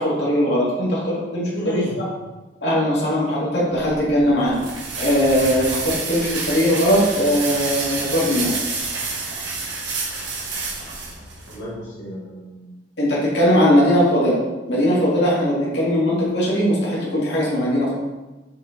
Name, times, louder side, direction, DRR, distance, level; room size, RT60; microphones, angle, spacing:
voice 1, 0.0-1.8 2.6-4.6 5.0-8.5 13.0-14.4 14.7-17.9, equal, 65° left, -6 dB, 2.2 m, -19 dB
voice 2, 1.5-2.0 11.5-12.7, equal, 85° left, -7 dB, 1.5 m, -31 dB
sound 1, 3.7-11.6, right 3 dB, 75° right, 1.4 m, -29 dB
6.8 x 4.4 x 3.9 m, 1.2 s
head